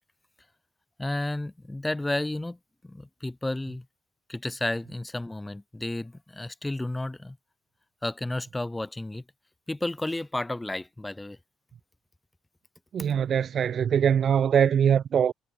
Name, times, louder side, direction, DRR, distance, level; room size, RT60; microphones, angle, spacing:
voice 1, 1.0-2.6 2.8-3.9 4.3-7.4 8.0-9.2 9.7-11.4, left 2 dB, 10° left, 2.7 m, -32 dB
voice 2, 12.9-15.3, right 8 dB, 45° right, 0.6 m, -22 dB
cardioid pair, 135°, 0 cm